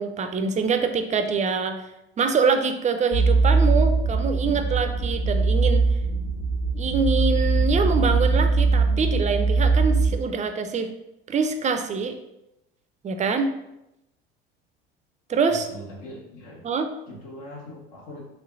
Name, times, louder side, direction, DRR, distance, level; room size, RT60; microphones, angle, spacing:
voice 1, 0.0-1.8 2.2-5.9 6.7-10.9 11.3-12.2 13.0-13.5 15.3-15.7 16.6-16.9, right 5 dB, 25° right, 7 dB, 0.4 m, -24 dB
sound 1, 3.1-10.2, right 3 dB, 35° left, 0.7 m, -21 dB
voice 2, 15.5-16.7 17.1-18.2, left 1 dB, 75° left, -2 dB, 1.1 m, -41 dB
3.1 x 3.1 x 2.4 m, 0.87 s
hypercardioid pair, 65°, 30 cm